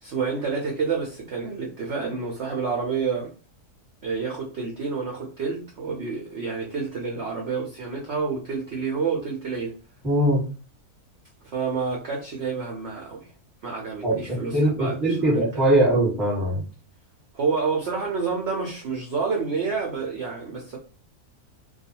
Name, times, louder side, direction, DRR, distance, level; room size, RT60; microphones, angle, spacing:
voice 1, 0.0-3.3 4.0-9.8 11.4-13.3 13.6-15.6 17.3-20.8, right 5 dB, 60° right, 0.7 m, -29 dB
voice 2, 10.0-10.4 14.0-16.6, right 1 dB, ahead, 1.0 m, -21 dB
2.4 x 2.3 x 2.8 m
omnidirectional pair, 1.6 m